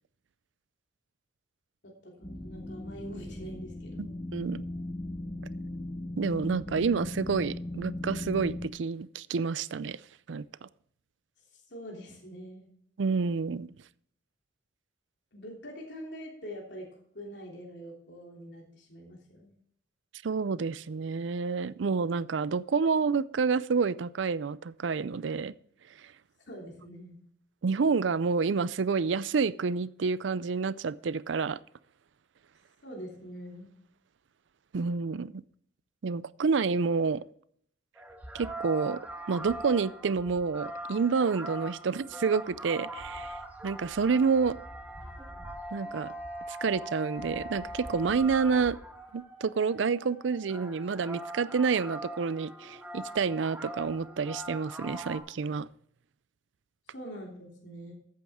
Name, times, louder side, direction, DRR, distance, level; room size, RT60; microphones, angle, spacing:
voice 1, 1.8-4.1 11.5-12.7 15.3-19.5 26.5-27.2 32.8-33.7 56.9-57.9, equal, 70° left, 3.2 m, -44 dB
sound 1, 2.2-8.7, left 1 dB, 25° left, 1.0 m, -38 dB
voice 2, 4.0-4.6 6.2-10.0 10.3-10.5 13.0-13.7 20.2-25.5 27.6-31.6 34.7-35.4 36.0-37.2 38.3-39.0 39.3-43.4 43.6-44.6 45.7-46.1 46.5-48.8 49.1-55.7, right 5 dB, 80° right, 0.5 m, -29 dB
sound 2, 38.0-55.2, right 1 dB, 10° right, 1.4 m, -42 dB
14.0 x 8.6 x 3.6 m
head